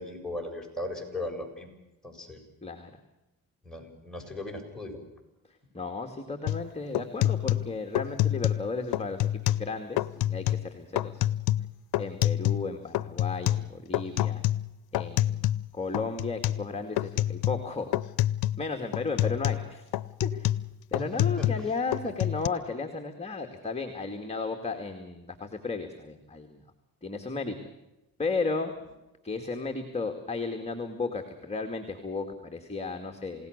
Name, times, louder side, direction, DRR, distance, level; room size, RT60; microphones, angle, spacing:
voice 1, 0.0-1.7 2.0-2.4 3.7-5.0 19.2-19.3 21.2-21.5, left 1 dB, ahead, 0 dB, 7.3 m, -37 dB
voice 2, 5.7-11.3 12.0-14.4 14.9-15.4 15.7-17.9 18.6-19.9 20.2-20.5 20.9-26.6 27.0-27.6 28.2-28.7 29.2-33.5, left 4 dB, 15° left, 4 dB, 2.3 m, -34 dB
sound 1, 6.5-6.6 6.9-8.7 8.9-9.7 10.0-10.7 11.0-12.7 12.9-15.7 15.9-16.7 17.0-17.7 17.9-18.6 18.9-21.7 21.9-22.5, left 14 dB, 85° left, 0.7 m, -27 dB
28.0 x 17.5 x 6.7 m, 0.96 s
cardioid pair, 90°, 36 cm